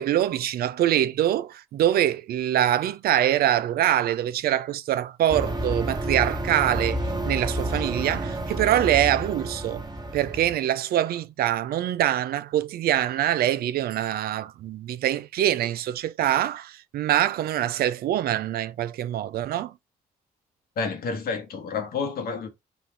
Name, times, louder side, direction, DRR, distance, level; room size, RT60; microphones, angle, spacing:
voice 1, 0.0-9.8 10.1-19.7, right 12 dB, 70° right, 0.4 m, -24 dB
sound 1, 5.3-10.5, right 1 dB, 25° right, 1.4 m, -30 dB
voice 2, 20.8-22.5, left 5 dB, 65° left, 1.3 m, -29 dB
4.1 x 2.5 x 4.5 m
supercardioid pair, 50°, 16 cm